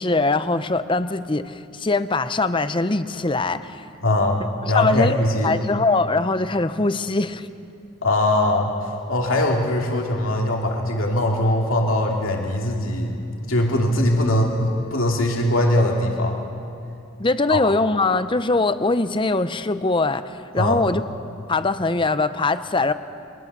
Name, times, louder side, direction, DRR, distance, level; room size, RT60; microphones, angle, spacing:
voice 1, 0.0-3.8 4.6-5.1 5.4-7.5 17.2-21.0 21.5-22.9, left 3 dB, 25° left, 12 dB, 0.7 m, -22 dB
voice 2, 4.0-5.5 8.0-8.7 9.1-16.4 17.5-17.6 20.6-20.8, left 1 dB, 90° left, 0 dB, 2.5 m, -21 dB
23.5 x 20.0 x 6.8 m, 2.6 s
head